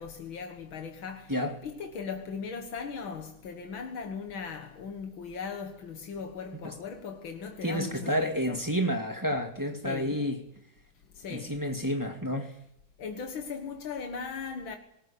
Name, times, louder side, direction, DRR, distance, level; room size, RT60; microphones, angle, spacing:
voice 1, 0.0-1.4 1.6-8.6 9.8-10.1 11.1-11.6 13.0-14.8, left 5 dB, 85° left, 2.4 m, -38 dB
voice 2, 7.6-10.4 11.3-12.5, equal, 10° right, 2.1 m, -30 dB
20.0 x 17.5 x 8.7 m
omnidirectional pair, 2.1 m